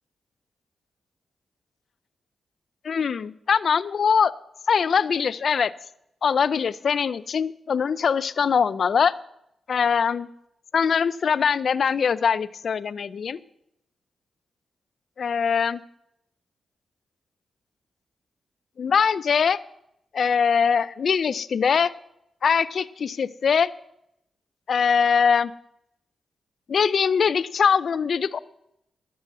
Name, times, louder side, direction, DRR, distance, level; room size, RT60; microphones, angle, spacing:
voice 1, 2.8-4.3 4.7-5.7 6.2-9.1 9.7-10.3 10.7-13.4 15.2-15.8 18.8-19.6 20.1-21.9 22.4-23.7 24.7-25.5 26.7-28.4, left 6 dB, 65° left, 18 dB, 0.5 m, -22 dB
12.0 x 6.9 x 7.6 m, 0.79 s
cardioid pair, 55°, 0 cm